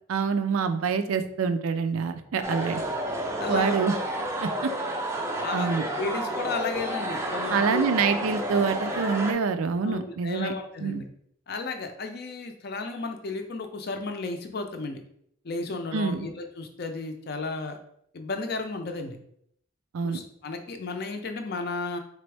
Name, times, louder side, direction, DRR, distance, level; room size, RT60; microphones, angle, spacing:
voice 1, 0.1-2.8 3.5-4.0 4.4-4.7 5.5-5.8 7.5-10.5 10.8-11.0 15.9-16.3 19.9-20.2, right 5 dB, 85° right, 9 dB, 0.4 m, -26 dB
sound 1, 2.4-9.3, right 1 dB, 15° right, 0.4 m, -30 dB
voice 2, 3.4-3.7 5.4-5.7 6.0-7.9 9.8-11.1 11.5-15.0 15.4-17.8 18.1-19.2 20.0-22.0, left 3 dB, 50° left, 6 dB, 0.5 m, -33 dB
4.0 x 3.4 x 3.3 m, 0.70 s
head